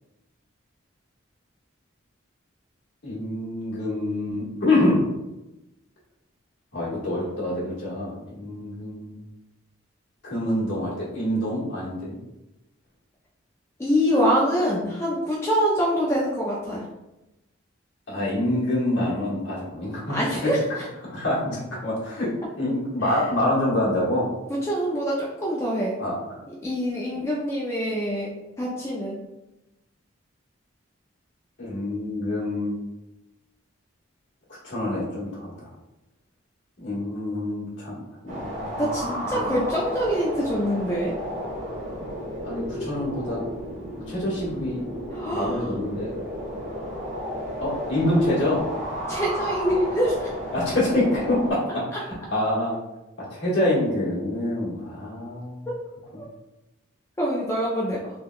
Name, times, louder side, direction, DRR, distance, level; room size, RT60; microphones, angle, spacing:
voice 1, 3.0-5.0 6.7-9.2 10.2-12.2 18.1-20.2 21.1-24.3 26.0-26.4 31.6-32.8 34.6-35.7 36.8-39.0 39.3-39.5 42.4-43.4 44.1-44.9 45.3-46.1 47.6-48.7 50.5-52.7 53.2-55.7, left 1 dB, 65° left, -8 dB, 1.3 m, -26 dB
voice 2, 13.8-16.9 20.1-20.8 24.5-26.0 26.6-29.2 38.8-41.2 45.1-45.7 49.1-50.3 55.7-55.8 56.2-56.3 57.2-58.0, equal, 15° left, -5 dB, 0.3 m, -25 dB
sound 1, 38.3-51.5, equal, 75° right, 1.1 m, -33 dB
3.4 x 2.2 x 2.3 m, 0.96 s
head